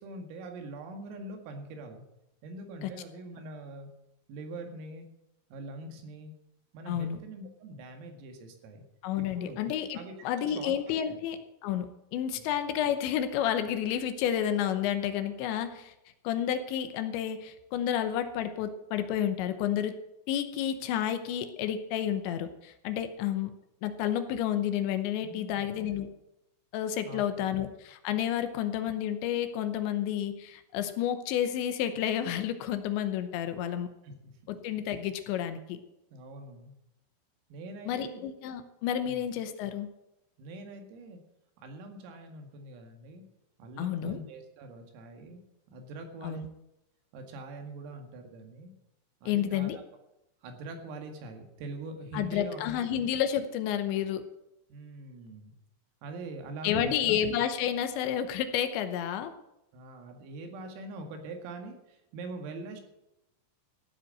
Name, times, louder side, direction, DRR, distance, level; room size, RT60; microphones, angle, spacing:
voice 1, 0.0-2.1 2.4-3.9 4.3-5.1 5.5-6.3 6.7-8.9 9.2-9.6 9.9-11.2 12.4-12.6 25.2-25.7 27.1-27.6 34.0-34.5 36.1-36.7 37.5-38.2 39.0-39.3 40.4-41.2 41.6-43.2 43.6-45.4 45.7-46.4 47.1-48.7 49.2-49.8 50.4-52.6 52.9-53.1 54.7-55.6 56.0-57.2 59.7-62.8, right 2 dB, 90° right, 4 dB, 4.7 m, -43 dB
voice 2, 6.9-7.2 9.0-10.0 10.2-15.9 16.2-20.0 20.3-23.5 23.8-26.1 26.7-33.9 34.6-35.8 37.9-39.9 43.8-44.2 46.2-46.5 49.3-49.8 52.1-54.2 56.6-59.3, left 10 dB, 75° left, 9 dB, 2.8 m, -30 dB
15.5 x 8.3 x 7.7 m, 0.89 s
omnidirectional pair, 5.9 m